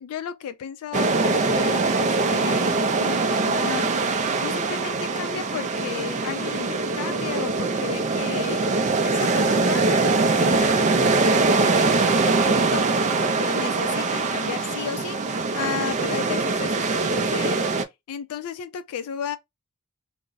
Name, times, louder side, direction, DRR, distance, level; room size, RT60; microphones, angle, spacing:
voice 1, 0.0-11.7 12.2-19.4, left 8 dB, 75° left, 0.3 m, -34 dB
sound 1, 0.9-17.8, right 3 dB, 35° right, 0.3 m, -22 dB
2.5 x 2.0 x 3.8 m
head